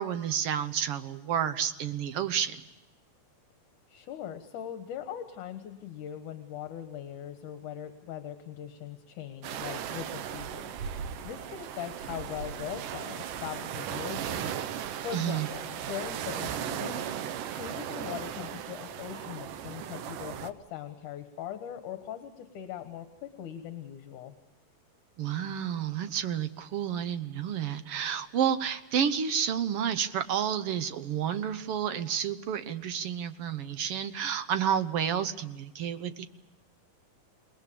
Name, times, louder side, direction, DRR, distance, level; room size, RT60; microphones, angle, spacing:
voice 1, 0.0-2.6 15.1-15.5 25.2-36.3, right 8 dB, 65° right, 10 dB, 1.5 m, -30 dB
voice 2, 3.9-17.0 17.5-24.3, left 10 dB, 75° left, 7 dB, 2.9 m, -41 dB
sound 1, 9.4-20.5, right 9 dB, 80° right, 2.6 m, -37 dB
28.5 x 20.5 x 6.9 m, 1.0 s
omnidirectional pair, 3.7 m